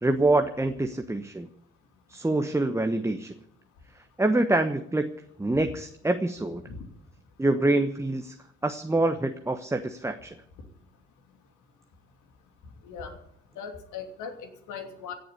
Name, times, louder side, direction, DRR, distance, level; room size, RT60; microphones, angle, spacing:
voice 1, 0.0-1.5 2.1-3.3 4.2-5.1 5.4-6.6 7.4-8.3 8.6-10.3, right 2 dB, 10° right, 7 dB, 1.1 m, -25 dB
voice 2, 12.8-13.2 13.6-15.1, left 6 dB, 60° left, 6 dB, 2.9 m, -39 dB
17.0 x 7.9 x 10.0 m, 0.71 s
figure-of-eight pair, 50°, 35 cm